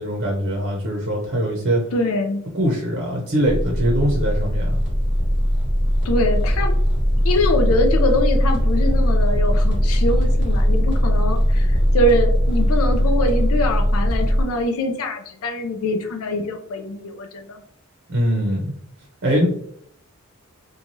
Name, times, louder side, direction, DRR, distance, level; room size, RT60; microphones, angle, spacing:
voice 1, 0.0-1.8 2.5-4.8 18.1-18.7 19.2-19.5, equal, 50° right, -1 dB, 0.6 m, -22 dB
voice 2, 1.9-2.4 6.0-6.7 7.2-11.7 11.9-17.6, left 1 dB, 75° left, 4 dB, 0.4 m, -23 dB
sound 1, 3.4-14.4, equal, 55° left, 1.2 m, -19 dB
3.1 x 2.3 x 2.6 m, 0.67 s
head